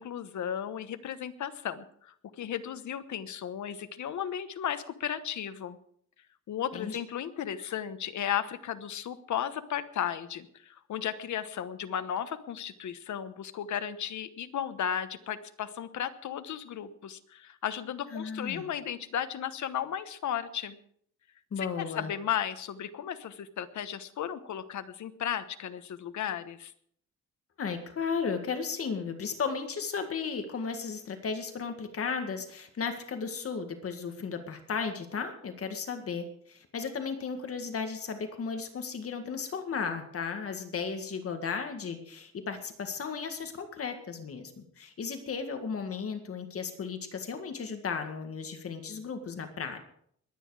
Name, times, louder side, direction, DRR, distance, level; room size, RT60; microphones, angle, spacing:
voice 1, 0.0-5.8 6.5-20.8 21.6-26.7, left 9 dB, 75° left, 11 dB, 1.2 m, -35 dB
voice 2, 18.1-18.6 21.5-22.1 27.6-49.8, left 5 dB, 50° left, 6 dB, 1.9 m, -35 dB
21.5 x 9.5 x 4.9 m, 0.65 s
wide cardioid pair, 150°, 30 cm